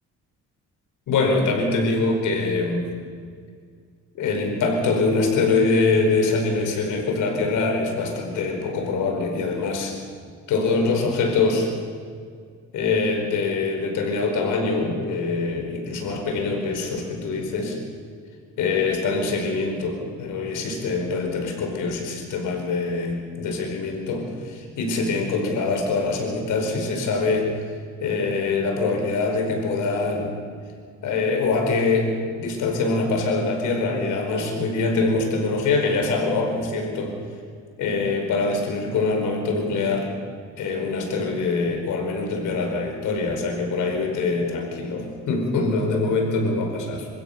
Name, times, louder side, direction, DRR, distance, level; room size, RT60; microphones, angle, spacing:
voice 1, 1.1-2.9 4.1-9.9 10.5-11.7 12.7-17.8 18.6-27.5 28.0-30.3 31.0-32.1 32.4-37.1 37.8-40.1 40.6-47.1, left 3 dB, 80° left, 3 dB, 5.0 m, -24 dB
27.0 x 16.0 x 6.8 m, 2.1 s
cardioid pair, 90°, 30 cm